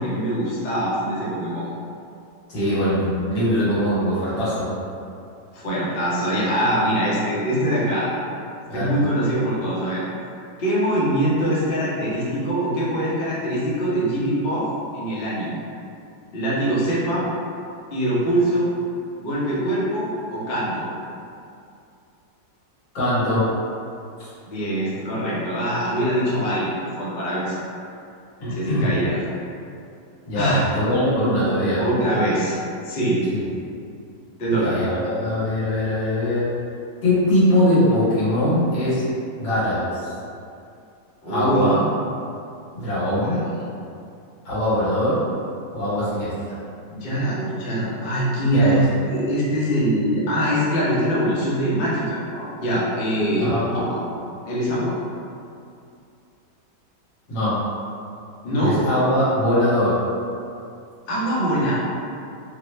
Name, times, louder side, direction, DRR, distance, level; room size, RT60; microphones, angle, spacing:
voice 1, 0.0-1.7 5.5-8.1 8.7-10.0 10.6-14.6 14.9-15.6 16.3-17.2 17.9-18.7 19.2-20.9 24.5-27.6 28.5-29.2 30.3-30.6 31.8-32.6 32.8-33.2 34.4-34.8 41.2-41.8 43.2-43.6 46.9-54.0 54.4-54.9 58.4-58.8 61.1-61.8, right 1 dB, 45° left, -8 dB, 0.7 m, -23 dB
voice 2, 2.5-4.7 8.7-8.9 22.9-23.5 26.4-26.5 28.4-28.9 30.3-31.9 33.3-33.4 34.6-36.5 37.0-39.0 39.4-40.1 41.3-41.8 42.7-43.4 44.5-45.2 45.7-46.3 48.5-48.8 53.4-53.7 57.3-57.6 58.6-60.0, left 1 dB, 90° left, -11 dB, 1.9 m, -21 dB
3.6 x 2.2 x 3.1 m, 2.5 s
omnidirectional pair, 1.9 m